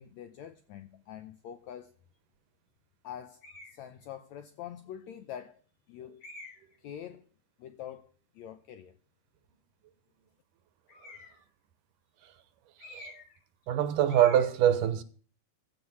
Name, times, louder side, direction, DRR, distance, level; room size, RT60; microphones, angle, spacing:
voice 1, 0.0-1.9 3.0-3.4 3.7-5.6 5.9-6.2 6.8-7.2 7.6-9.0, left 10 dB, 80° left, 1.6 m, -45 dB
sound 1, 3.4-3.8 4.6-4.7 6.2-6.8 10.9-11.5 12.8-13.4 13.6-13.8 14.1-14.5, left 2 dB, 55° left, 6.3 m, -48 dB
voice 2, 12.8-13.1 13.7-15.0, right 10 dB, 70° right, 2.5 m, -24 dB
15.5 x 5.3 x 9.5 m
omnidirectional pair, 4.0 m